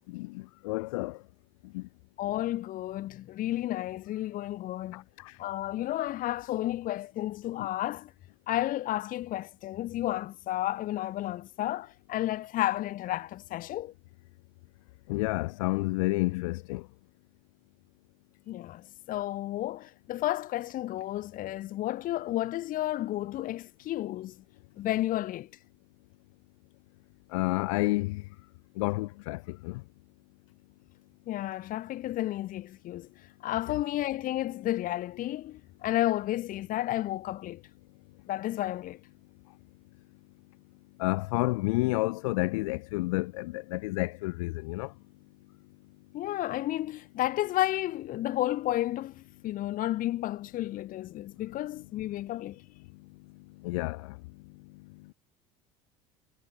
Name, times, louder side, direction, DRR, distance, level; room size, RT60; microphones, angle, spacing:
voice 1, 0.1-1.2 1.7-1.8 4.9-5.3 7.6-7.7 15.1-16.8 27.3-28.2 28.8-29.8 41.0-44.9 53.6-54.2, left 23 dB, 80° left, 5.3 m, -30 dB
voice 2, 2.2-5.0 5.4-8.1 8.5-13.9 18.5-24.4 24.8-25.5 31.3-33.1 33.4-37.6 38.3-39.0 46.1-52.6, left 14 dB, 55° left, 7.3 m, -32 dB
supercardioid pair, 90°, 17 cm